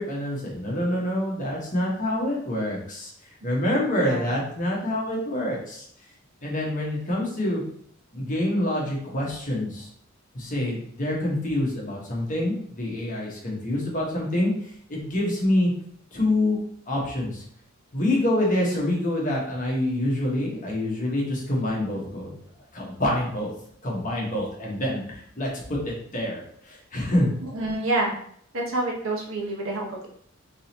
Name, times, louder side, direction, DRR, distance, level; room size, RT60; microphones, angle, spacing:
voice 1, 0.0-3.1 3.4-5.9 6.4-7.6 8.1-9.9 10.3-15.7 16.1-16.6 16.9-17.4 17.9-22.3 22.7-23.5 23.8-27.3, left 1 dB, 40° left, -3 dB, 1.3 m, -26 dB
voice 2, 27.5-28.2 28.5-30.1, right 2 dB, 90° right, -1 dB, 1.2 m, -27 dB
4.1 x 3.8 x 2.9 m, 0.64 s
head